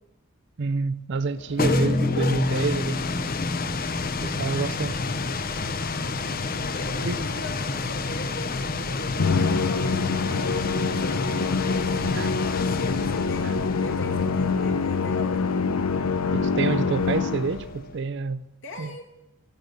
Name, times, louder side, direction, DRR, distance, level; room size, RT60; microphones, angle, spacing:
voice 1, 0.6-3.0 4.2-5.1 7.0-7.2 12.2-12.3 13.4-13.5 16.3-18.4 18.8-19.0, right 4 dB, 55° right, 0.5 m, -28 dB
sound 1, 1.3-18.0, left 3 dB, 40° left, 0.7 m, -30 dB
sound 2, 1.6-8.1, left 1 dB, 10° left, 0.4 m, -30 dB
voice 2, 6.6-12.0 12.4-15.5 18.6-19.0, left 1 dB, 60° left, 2.3 m, -40 dB
Musical instrument, 9.2-17.7, left 4 dB, 90° left, 0.7 m, -25 dB
15.0 x 8.5 x 6.7 m
head